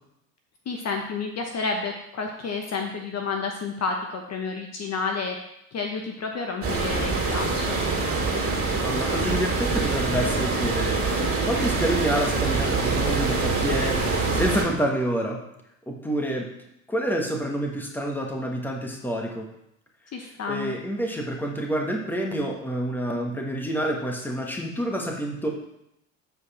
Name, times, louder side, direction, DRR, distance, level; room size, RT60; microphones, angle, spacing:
voice 1, 0.7-5.4 5.7-7.8 20.1-20.8, left 4 dB, 40° left, 2 dB, 1.0 m, -30 dB
sound 1, 6.6-14.7, right 3 dB, 35° right, 2.5 m, -25 dB
voice 2, 8.8-11.0 11.4-14.0 14.3-15.4 15.9-16.5 16.9-19.5 20.5-25.5, equal, 5° left, 0 dB, 1.5 m, -28 dB
8.1 x 4.9 x 4.3 m, 0.81 s
supercardioid pair, 85°, 41 cm